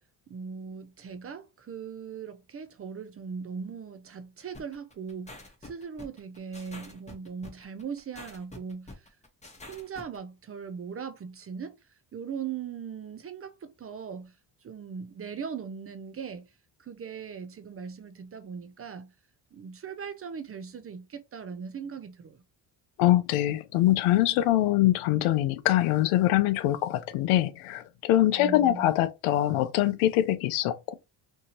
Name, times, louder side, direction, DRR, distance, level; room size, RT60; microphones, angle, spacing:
voice 1, 0.3-9.1 9.7-11.7 12.1-14.3 14.6-16.4 16.8-19.1 19.5-22.4 28.3-28.9, right 6 dB, 30° right, 0.4 m, -39 dB
sound 1, 4.5-10.2, left 2 dB, 15° left, 1.0 m, -46 dB
voice 2, 23.0-30.9, left 14 dB, 85° left, 0.6 m, -24 dB
2.7 x 2.6 x 2.8 m
cardioid pair, 80°, 49 cm